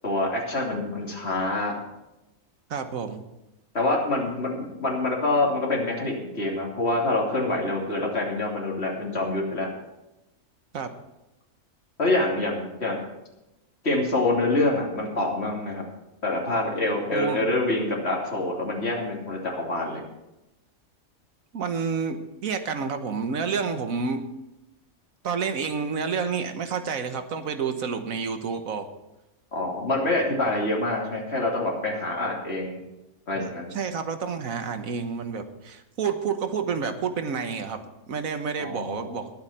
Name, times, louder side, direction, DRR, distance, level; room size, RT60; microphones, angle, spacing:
voice 1, 0.0-1.8 3.7-9.7 12.0-13.0 13.8-15.8 16.2-20.0 29.5-32.8 33.3-33.7 38.6-39.1, left 2 dB, 50° left, -1 dB, 3.2 m, -26 dB
voice 2, 2.7-3.2 10.7-10.9 17.1-17.4 21.5-24.3 25.2-28.9 33.3-37.8 38.1-39.3, right 5 dB, 75° right, 8 dB, 1.6 m, -29 dB
20.0 x 8.9 x 4.3 m, 0.95 s
omnidirectional pair, 1.5 m